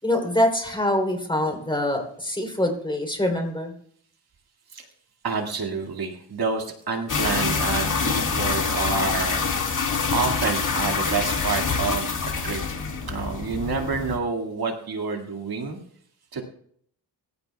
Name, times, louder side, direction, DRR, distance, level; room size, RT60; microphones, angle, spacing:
voice 1, 0.0-3.7, left 1 dB, 10° left, 2 dB, 3.3 m, -24 dB
voice 2, 5.2-9.4 10.1-12.6 13.0-15.8 16.3-16.4, right 4 dB, 60° right, 3 dB, 2.2 m, -28 dB
sound 1, 7.1-14.2, left 5 dB, 45° left, 2.1 m, -26 dB
24.0 x 15.0 x 2.3 m, 0.64 s
wide cardioid pair, 135°, 42 cm